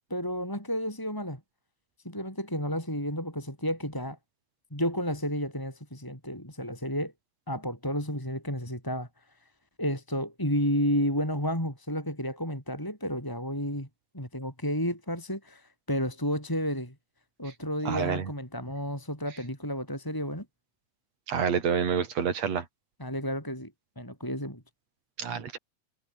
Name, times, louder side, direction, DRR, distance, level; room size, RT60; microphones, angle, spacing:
voice 1, 0.1-1.4 2.0-4.2 4.7-7.1 7.5-9.1 9.8-13.9 14.1-16.9 17.4-20.5 23.0-24.6, equal, 5° left, 7.2 m, -31 dB
voice 2, 17.9-18.3 21.3-22.7 25.2-25.6, right 7 dB, 60° right, 3.7 m, -28 dB
omnidirectional pair, 3.5 m